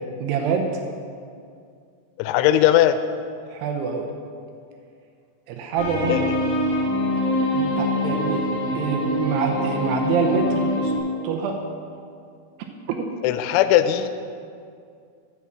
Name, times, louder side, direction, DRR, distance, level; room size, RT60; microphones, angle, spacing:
voice 1, 0.2-0.8 3.5-4.1 5.5-6.2 7.5-10.9 11.2-11.6 13.0-13.1, right 5 dB, 80° right, 3 dB, 2.5 m, -26 dB
voice 2, 2.2-3.0 6.1-6.2 13.2-14.1, left 12 dB, 90° left, 10 dB, 3.0 m, -18 dB
sound 1, 5.8-11.0, left 1 dB, 75° left, 1.2 m, -24 dB
8.1 x 7.2 x 7.5 m, 2.3 s
omnidirectional pair, 5.4 m